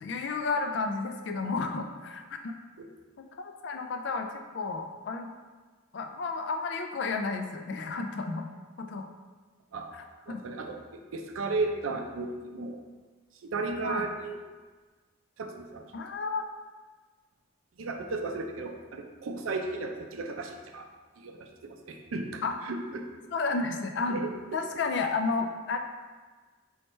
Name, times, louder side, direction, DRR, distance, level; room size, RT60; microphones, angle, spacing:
voice 1, 0.0-2.5 3.2-5.3 5.9-8.5 8.8-9.1 10.3-10.4 13.8-14.1 15.9-16.5 22.4-22.6 23.3-24.2 24.5-25.8, left 4 dB, 60° left, 5 dB, 0.3 m, -32 dB
voice 2, 10.3-12.8 13.4-14.4 15.4-15.8 17.8-20.9 21.2-23.0 24.1-24.3, right 3 dB, 85° right, 4 dB, 0.5 m, -35 dB
4.5 x 3.2 x 3.1 m, 1.4 s
head